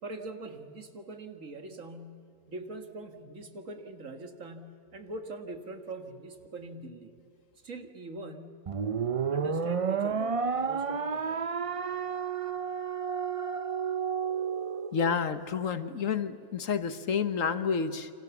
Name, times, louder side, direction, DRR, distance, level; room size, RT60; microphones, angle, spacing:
voice 1, 0.0-7.1 7.6-8.6 9.3-11.5, right 2 dB, 60° right, 6 dB, 2.3 m, -43 dB
sound 1, 8.7-15.1, right 6 dB, 45° right, 0.4 m, -31 dB
voice 2, 14.9-18.1, left 6 dB, 65° left, 11 dB, 1.4 m, -29 dB
29.0 x 26.0 x 7.2 m, 2.5 s
omnidirectional pair, 1.5 m